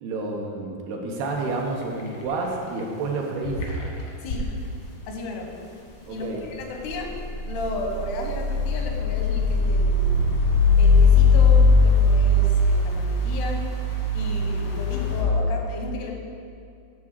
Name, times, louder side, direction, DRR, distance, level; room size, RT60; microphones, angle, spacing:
voice 1, 0.0-3.6 6.1-6.5, right 3 dB, 80° right, 0 dB, 2.9 m, -29 dB
sound 1, 1.2-1.5 1.8-2.5 2.8-2.9 3.4-4.4 6.6-15.2, left 3 dB, 65° left, 1.3 m, -20 dB
voice 2, 4.2-4.6 5.1-5.6 6.1-7.2 7.5-10.2 10.8-13.7 14.1-16.2, left 2 dB, 85° left, 2 dB, 3.1 m, -34 dB
10.5 x 3.7 x 7.4 m, 2.4 s
omnidirectional pair, 4.5 m